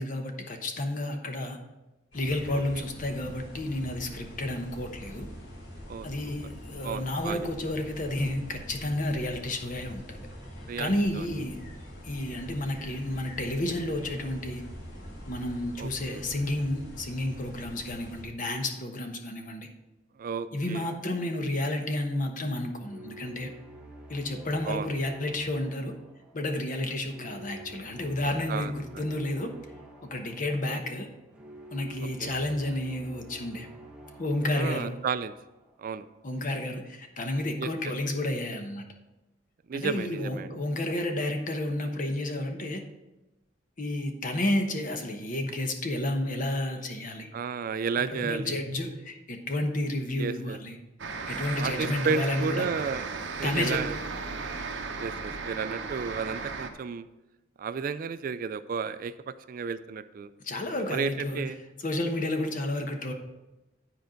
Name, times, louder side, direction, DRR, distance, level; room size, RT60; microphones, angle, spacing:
voice 1, 0.0-1.6 2.1-5.3 6.0-10.2 10.8-11.7 12.0-14.6 15.3-19.7 20.5-23.5 24.1-25.9 26.3-29.5 30.0-31.1 31.7-33.7 34.2-35.0 36.2-38.8 39.7-42.8 43.8-47.3 48.1-50.8 51.3-52.7 53.4-53.8 60.4-61.5 61.8-63.1, left 1 dB, 45° left, 5 dB, 1.0 m, -31 dB
sound 1, 2.1-18.2, equal, 70° left, 2.7 m, -44 dB
voice 2, 6.8-7.5 10.7-11.3 15.8-16.2 20.2-20.9 24.7-24.9 28.5-29.0 30.6-30.8 32.2-32.3 34.5-35.3 35.8-36.1 37.6-37.7 39.7-40.5 47.3-48.6 50.2-50.6 51.6-53.0 53.4-54.0 55.0-57.1 57.6-59.1 59.5-60.3 60.9-61.6, right 5 dB, 45° right, 13 dB, 0.3 m, -32 dB
sound 2, 22.8-35.9, right 1 dB, 5° right, 1.1 m, -49 dB
sound 3, 51.0-56.7, right 4 dB, 70° right, 0.8 m, -35 dB
10.0 x 4.5 x 5.1 m, 1.0 s
head